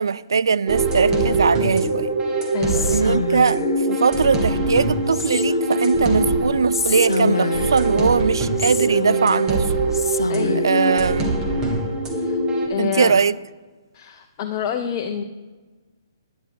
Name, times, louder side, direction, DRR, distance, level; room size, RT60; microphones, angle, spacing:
voice 1, 0.0-2.1 2.9-3.6 3.9-9.7 10.5-11.4 12.8-13.4, right 5 dB, 75° right, 0.3 m, -20 dB
sound 1, 0.7-12.7, right 2 dB, 20° right, 1.7 m, -22 dB
voice 2, 2.5-3.1 10.3-10.6 12.7-13.1 14.0-15.2, left 8 dB, 35° left, 0.7 m, -27 dB
Whispering, 2.7-3.8 5.1-5.8 6.7-7.9 8.6-9.5 9.9-10.8, left 4 dB, 80° left, 0.4 m, -27 dB
10.0 x 9.9 x 4.3 m
figure-of-eight pair, 135°, 2 cm